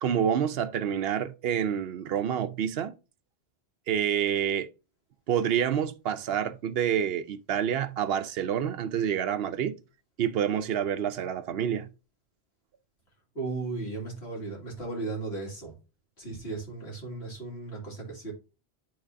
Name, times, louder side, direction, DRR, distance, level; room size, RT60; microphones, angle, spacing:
voice 1, 0.0-2.9 3.9-4.7 5.3-9.8 10.2-11.9, right 9 dB, 70° right, 0.8 m, -28 dB
voice 2, 13.3-15.7 16.2-18.3, right 3 dB, 70° left, 2.4 m, -36 dB
10.5 x 3.6 x 2.7 m
omnidirectional pair, 1.1 m